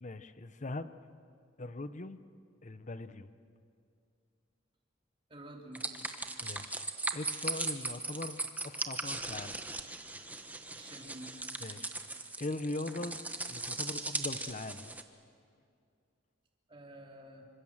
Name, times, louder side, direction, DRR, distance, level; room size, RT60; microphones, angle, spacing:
voice 1, 0.0-0.9 1.6-2.2 2.6-3.3 6.4-6.8 7.1-9.6 11.6-11.9 12.4-15.0, left 2 dB, 40° left, 12 dB, 0.8 m, -41 dB
voice 2, 5.3-6.0 10.7-11.4 16.7-17.5, right 1 dB, 25° right, 0 dB, 3.3 m, -50 dB
sound 1, 5.7-15.0, right 2 dB, 10° right, 1.1 m, -38 dB
26.5 x 25.5 x 7.4 m, 2.4 s
head